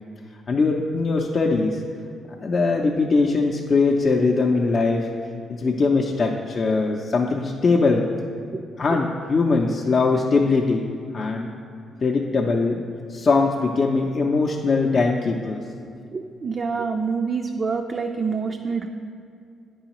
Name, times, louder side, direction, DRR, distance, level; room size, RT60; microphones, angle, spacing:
voice 1, 0.5-1.8 2.4-5.1 5.6-8.1 8.8-11.5 12.0-12.8 13.1-15.6, left 3 dB, 45° left, -1 dB, 0.5 m, -21 dB
voice 2, 16.1-18.9, right 5 dB, 45° right, 3 dB, 0.3 m, -26 dB
8.8 x 4.8 x 3.0 m, 2.4 s
cardioid pair, 75°, 0 cm